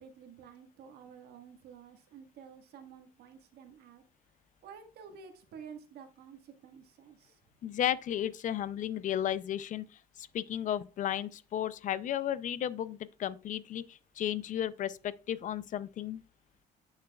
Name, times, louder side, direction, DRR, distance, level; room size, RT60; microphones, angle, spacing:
voice 1, 0.0-4.0 4.6-7.4, right 7 dB, 70° right, 1.6 m, -51 dB
voice 2, 7.6-9.9 10.2-16.2, left 10 dB, 50° left, 0.5 m, -34 dB
8.4 x 6.3 x 2.3 m
cardioid pair, 110°, 17 cm